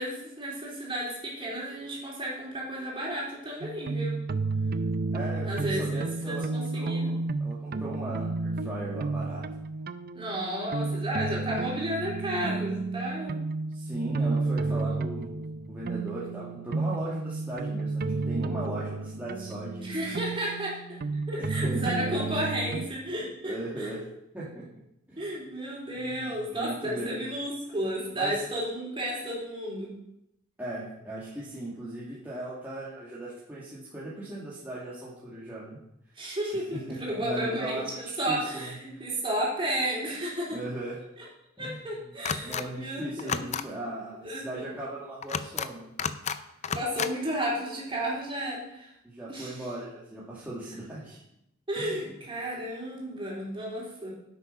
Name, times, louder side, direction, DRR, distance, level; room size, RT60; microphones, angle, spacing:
voice 1, 0.0-4.2 5.4-7.1 10.1-13.4 14.2-15.1 19.8-21.0 21.3-23.9 25.2-29.9 36.2-40.6 41.2-41.3 41.6-43.6 44.2-44.7 46.7-48.9 49.3-49.7 51.7-54.1, right 1 dB, 25° right, -4 dB, 3.8 m, -33 dB
sound 1, 3.6-22.9, right 3 dB, 50° right, 0.5 m, -32 dB
voice 2, 5.1-9.4 13.7-15.4 15.7-20.2 21.4-21.9 23.5-24.0 24.3-24.7 25.1-25.3 26.0-27.2 28.1-28.4 30.6-35.8 36.7-39.0 40.5-41.0 41.6-42.1 42.4-45.9 49.0-51.2 51.8-51.9, right 1 dB, 10° right, -9 dB, 2.1 m, -38 dB
sound 2, 42.2-42.6 43.2-43.6 45.2-45.7 46.0-46.4 46.6-47.1, left 6 dB, 35° left, 0.5 m, -31 dB
8.4 x 8.3 x 5.5 m, 0.82 s
head